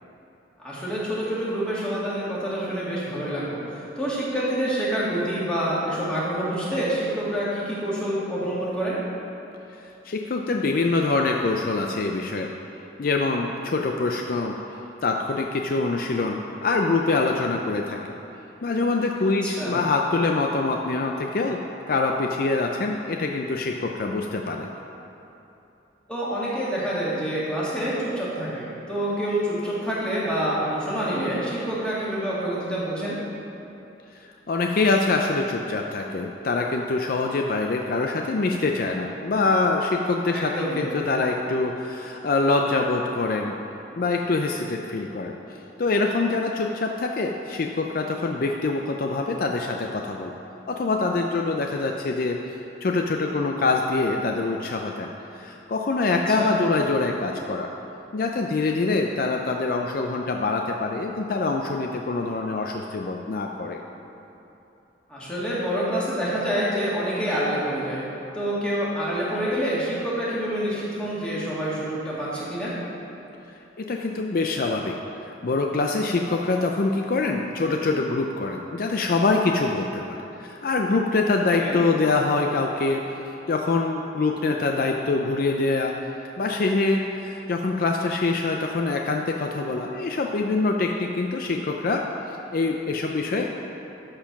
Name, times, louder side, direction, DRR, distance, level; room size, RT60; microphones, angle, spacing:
voice 1, 0.6-9.0 19.4-19.8 26.1-33.2 40.3-40.9 56.3-56.6 65.1-68.0 68.3-72.7 81.5-81.8, equal, 5° left, -9 dB, 2.0 m, -27 dB
voice 2, 9.8-12.5 13.0-14.6 15.0-18.0 18.6-21.6 21.9-24.7 34.2-43.5 44.0-50.3 50.7-55.1 55.4-57.7 58.1-63.8 73.8-74.9 75.2-85.9 86.4-93.5, left 3 dB, 50° left, 2 dB, 0.4 m, -25 dB
12.5 x 4.5 x 5.8 m, 2.9 s
head